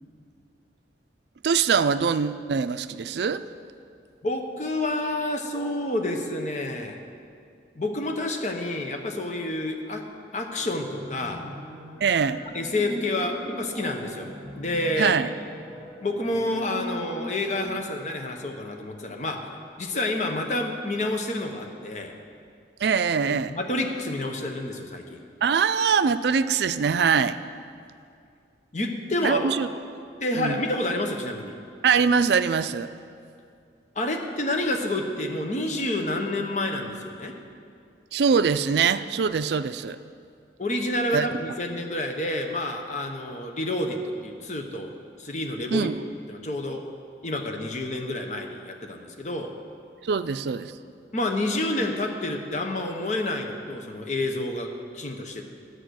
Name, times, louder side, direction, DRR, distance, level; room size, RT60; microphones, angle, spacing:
voice 1, 1.4-3.4 12.0-12.4 15.0-15.3 22.8-23.5 25.4-27.4 29.2-29.7 30.3-30.6 31.8-32.9 38.1-40.0 41.1-41.3 45.7-46.0 50.0-50.7, right 6 dB, 75° right, 13 dB, 0.4 m, -23 dB
voice 2, 4.2-7.0 7.7-10.0 10.3-11.4 12.5-15.2 16.0-19.4 19.8-22.1 23.3-25.2 28.7-29.5 30.2-31.5 34.0-37.3 40.6-44.9 45.2-45.9 46.3-46.8 47.2-49.5 51.1-54.7 54.9-55.4, left 1 dB, 40° left, 3 dB, 0.9 m, -29 dB
sound 1, 10.5-17.7, equal, 10° left, 2.7 m, -40 dB
10.5 x 7.9 x 6.3 m, 2.3 s
head